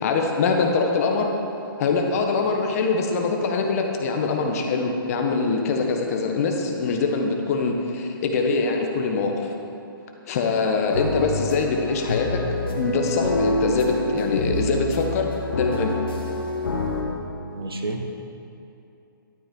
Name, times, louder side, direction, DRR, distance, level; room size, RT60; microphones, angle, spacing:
voice 1, 0.0-1.3 1.8-9.5 10.3-12.4 12.7-15.9, left 4 dB, 40° left, 3 dB, 1.4 m, -23 dB
sound 1, 10.8-17.0, left 2 dB, 70° left, 2.1 m, -26 dB
voice 2, 17.5-18.1, right 2 dB, 85° right, 3 dB, 1.5 m, -29 dB
12.5 x 8.4 x 4.7 m, 2.7 s
hypercardioid pair, 140°, 12 cm